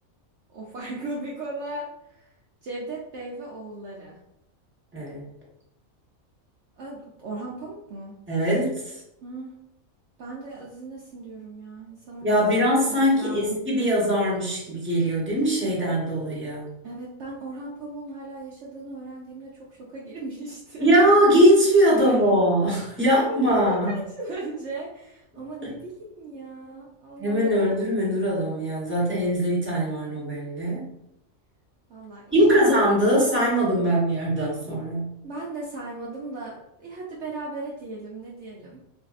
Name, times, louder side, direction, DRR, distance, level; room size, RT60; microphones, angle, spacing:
voice 1, 0.5-2.3 2.6-4.2 6.8-8.2 9.2-9.5 10.2-12.3 13.1-13.6 16.8-20.9 22.0-22.2 23.2-27.6 31.9-32.7 33.1-33.3 35.2-38.8, right 2 dB, 65° right, -4 dB, 0.9 m, -37 dB
voice 2, 4.9-5.2 8.3-9.0 12.2-16.7 20.8-23.9 25.6-25.7 27.2-30.9 32.3-35.2, equal, 10° right, -6 dB, 1.1 m, -21 dB
4.3 x 2.6 x 2.4 m, 0.83 s
omnidirectional pair, 1.4 m